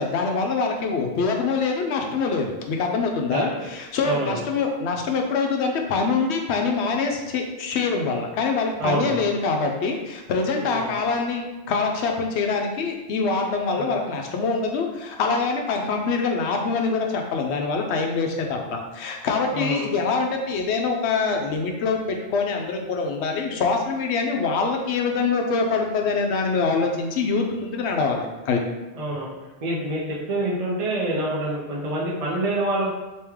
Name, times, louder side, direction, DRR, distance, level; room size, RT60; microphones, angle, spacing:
voice 1, 0.0-28.6, left 4 dB, 70° left, 2 dB, 0.8 m, -24 dB
voice 2, 3.3-3.7 4.0-4.4 8.8-9.2 10.6-10.9 13.8-14.0 19.5-19.9 29.0-29.3 29.6-30.0 30.3-32.9, right 1 dB, 40° right, -5 dB, 0.6 m, -26 dB
3.1 x 2.9 x 3.5 m, 1.1 s
omnidirectional pair, 1.2 m